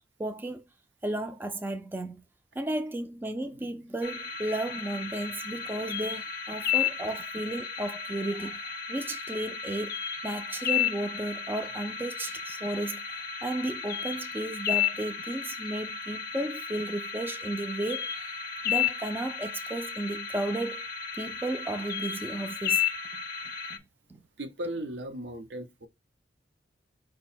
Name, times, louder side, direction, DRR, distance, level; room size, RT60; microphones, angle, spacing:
voice 1, 0.2-0.6 1.0-2.2 2.6-10.0 10.2-18.3 18.6-20.8 21.1-22.8 23.1-23.2 24.1-24.2, right 1 dB, 10° right, 0.3 m, -34 dB
sound 1, 4.0-23.8, left 8 dB, 55° left, 0.5 m, -33 dB
voice 2, 24.4-25.9, right 1 dB, 75° right, 0.7 m, -36 dB
4.8 x 2.2 x 4.3 m
head